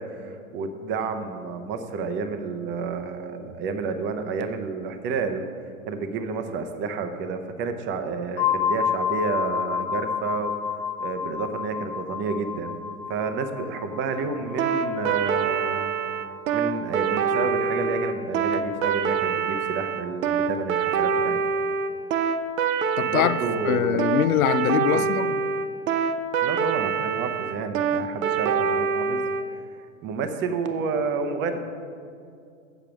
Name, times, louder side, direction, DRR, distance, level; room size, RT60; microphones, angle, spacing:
voice 1, 0.0-5.4 5.9-12.8 13.1-15.9 16.5-21.4 23.1-24.0 24.9-25.1 26.4-29.2 30.0-31.6, right 4 dB, 25° right, 0.7 m, -30 dB
sound 1, 8.4-18.0, left 7 dB, 55° left, 1.2 m, -31 dB
sound 2, 14.6-29.4, right 6 dB, 70° right, 0.7 m, -25 dB
voice 2, 23.0-23.4 23.7-25.3, left 11 dB, 80° left, 0.5 m, -23 dB
7.4 x 7.0 x 6.1 m
hypercardioid pair, 120°, 42 cm